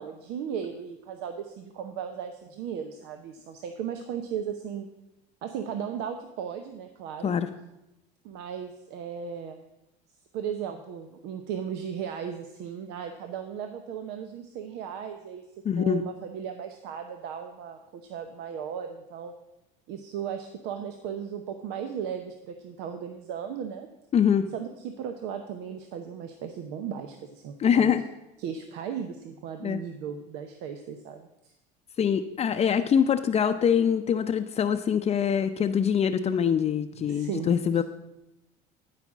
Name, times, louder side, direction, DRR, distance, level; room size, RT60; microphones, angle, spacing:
voice 1, 0.0-4.9 5.4-7.3 8.2-9.6 10.3-15.4 15.8-19.3 19.9-23.9 24.5-28.0 28.4-31.5 37.0-37.5, right 8 dB, 75° right, 7 dB, 0.9 m, -36 dB
voice 2, 15.6-16.0 24.1-24.5 27.6-28.0 29.6-29.8 32.0-37.8, left 8 dB, 35° left, 7 dB, 0.6 m, -24 dB
13.0 x 5.0 x 7.2 m, 0.93 s
supercardioid pair, 90°, 18 cm